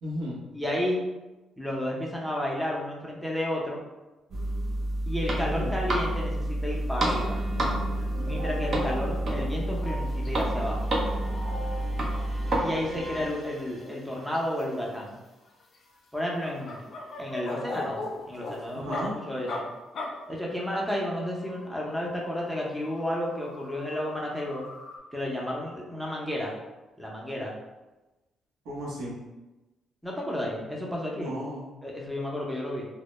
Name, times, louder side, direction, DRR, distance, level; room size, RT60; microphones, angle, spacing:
voice 1, 0.0-0.4 5.4-5.7 18.7-19.2 28.6-29.2 31.1-31.7, equal, 85° right, -6 dB, 0.8 m, -34 dB
voice 2, 0.5-1.0 1.6-3.8 5.1-7.4 8.2-10.9 12.6-15.2 16.1-16.8 17.2-18.0 18.3-19.7 20.3-24.7 25.1-26.5 27.0-27.5 30.0-31.3 31.8-32.9, left 1 dB, ahead, -3 dB, 0.5 m, -32 dB
sound 1, 4.3-12.6, right 1 dB, 55° right, 0.5 m, -29 dB
sound 2, 7.1-7.3 7.6-8.1 8.4-8.5 8.9-9.0 9.3-11.3 11.6-11.7 12.0-13.8 14.1-14.9 15.4-19.0 19.5-19.6 19.9-20.1 21.2-25.0, left 3 dB, 55° left, 0.4 m, -41 dB
sound 3, 7.5-14.2, equal, 20° right, 0.8 m, -42 dB
2.1 x 2.0 x 3.0 m, 1.1 s
cardioid pair, 90°, 0 cm